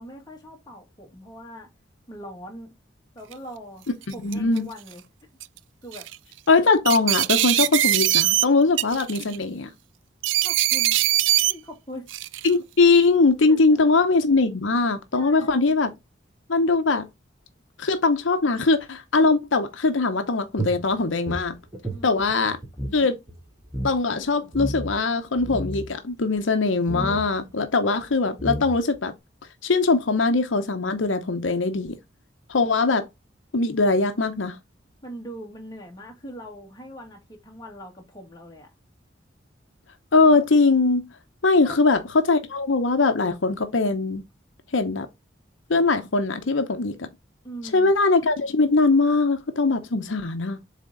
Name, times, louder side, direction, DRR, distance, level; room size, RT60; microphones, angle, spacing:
voice 1, 0.0-1.7 2.1-2.7 3.2-5.0 5.8-6.1 10.4-11.0 11.5-12.1 13.5-13.9 15.1-15.7 21.8-22.3 35.0-38.7 41.6-41.8 47.4-47.9, equal, 20° left, 2.0 m, -41 dB
sound 1, 3.3-3.4 4.0-4.6 5.4-5.6 5.9-6.2 6.8-8.4 8.8-9.4 10.2-11.5 12.1-12.5, right 14 dB, 75° right, 0.4 m, -22 dB
voice 2, 4.2-4.6 6.5-9.7 12.4-15.9 16.5-17.1 17.8-21.5 22.0-22.6 22.9-23.2 23.8-29.1 29.6-32.0 32.5-33.0 33.5-34.6 40.1-41.0 41.4-44.2 44.7-45.1 45.7-47.1 47.7-50.6, left 3 dB, 85° left, 0.8 m, -21 dB
sound 2, 20.6-23.0 23.3-23.4 23.7-23.9 24.5-25.0 25.4-25.9 26.9-27.3 28.0-28.1 28.4-29.0, right 1 dB, 15° right, 1.5 m, -31 dB
7.5 x 3.7 x 3.8 m
head